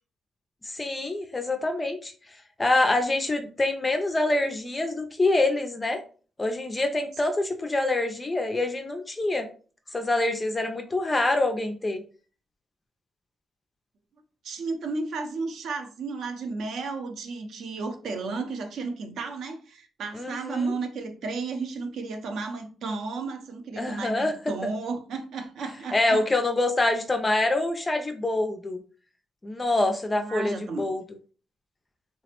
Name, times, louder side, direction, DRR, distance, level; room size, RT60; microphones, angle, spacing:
voice 1, 0.6-2.1 2.6-6.0 6.4-9.5 9.9-12.0 20.1-20.8 23.8-24.3 25.9-28.8 29.4-31.0, left 2 dB, 15° left, 5 dB, 0.3 m, -25 dB
voice 2, 14.4-26.2 30.1-30.8, right 3 dB, 70° right, 6 dB, 0.5 m, -33 dB
3.2 x 2.0 x 2.9 m, 0.40 s
cardioid pair, 145°, 0 cm